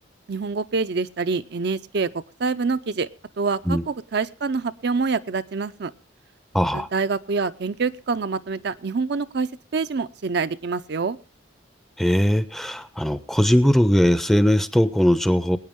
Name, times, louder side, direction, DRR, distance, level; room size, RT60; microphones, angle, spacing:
voice 1, 0.3-2.1 2.4-3.1 3.4-5.9 6.7-11.2, right 4 dB, 60° right, 11 dB, 0.5 m, -26 dB
voice 2, 6.5-6.9 12.0-15.6, equal, ahead, 13 dB, 0.6 m, -19 dB
21.5 x 9.5 x 3.6 m, 0.40 s
head